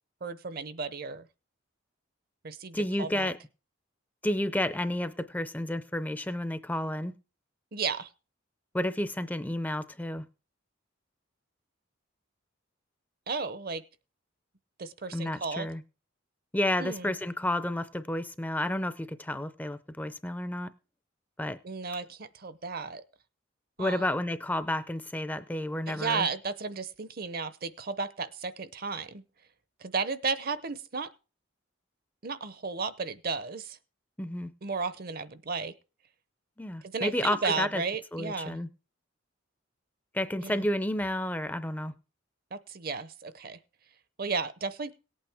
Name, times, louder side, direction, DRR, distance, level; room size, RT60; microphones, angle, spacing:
voice 1, 0.2-1.3 2.4-3.3 7.7-8.1 13.3-13.8 14.8-15.7 16.8-17.1 21.6-23.0 23.8-24.1 25.9-29.2 29.8-31.1 32.2-33.8 34.6-35.7 36.8-38.6 40.4-40.6 42.5-43.6 44.2-44.9, right 4 dB, 50° right, 0.7 m, -34 dB
voice 2, 2.7-3.4 4.2-7.1 8.7-10.2 15.1-15.8 16.5-20.7 21.4-21.6 23.8-26.3 34.2-34.5 36.6-37.8 38.1-38.7 40.1-41.9, left 1 dB, 10° left, 0.5 m, -31 dB
18.0 x 8.7 x 3.5 m
head